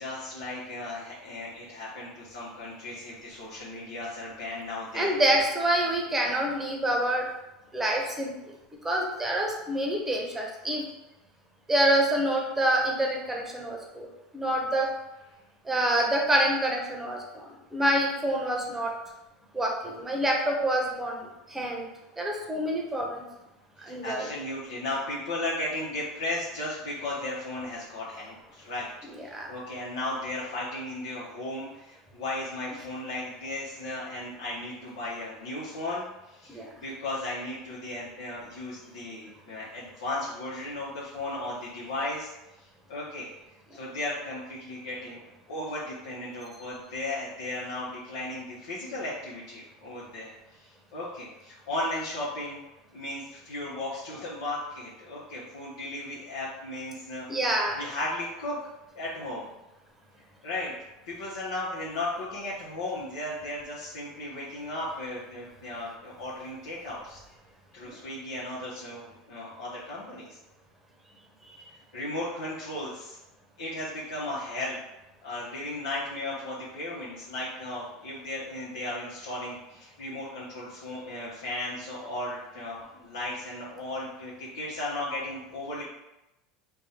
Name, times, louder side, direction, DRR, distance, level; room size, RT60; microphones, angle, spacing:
voice 1, 0.0-5.1 23.8-28.9 29.2-42.3 42.6-43.3 43.7-52.6 52.9-57.2 57.7-58.6 59.0-59.5 60.4-60.7 61.1-67.2 67.7-70.3 71.9-73.2 73.6-74.8 75.2-85.8, left 1 dB, 90° left, -8 dB, 0.9 m, -35 dB
voice 2, 4.9-7.2 7.7-8.3 8.8-10.8 11.7-14.1 14.3-14.9 15.7-18.9 19.5-21.2 21.5-21.9 22.2-23.2 23.9-24.3 29.3-29.5 36.5-36.7 57.3-57.8 71.5-71.6, right 1 dB, 10° right, 0 dB, 0.8 m, -27 dB
3.4 x 2.3 x 4.1 m, 0.95 s
supercardioid pair, 120°, 3 cm